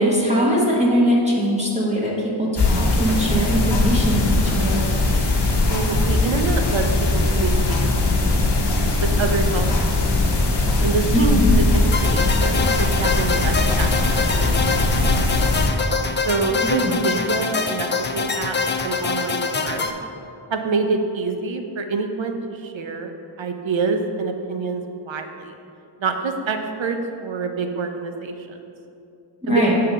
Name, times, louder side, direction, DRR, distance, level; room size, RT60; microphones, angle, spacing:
voice 1, 0.0-4.9 11.1-11.5 16.6-17.0 29.4-29.7, equal, 15° right, -5 dB, 1.1 m, -21 dB
sound 1, 2.6-15.7, left 2 dB, 55° left, 1.0 m, -20 dB
voice 2, 5.7-6.8 7.1-8.5 9.0-10.5 10.8-14.5 14.8-14.9 15.3-15.5 16.2-18.6 18.8-19.9 20.5-23.1 23.4-25.5 26.0-28.6 29.5-29.6, right 4 dB, 65° right, 5 dB, 0.7 m, -26 dB
sound 2, 11.9-19.9, left 4 dB, 25° left, 0.3 m, -25 dB
7.5 x 3.8 x 5.4 m, 2.7 s
wide cardioid pair, 85°, 49 cm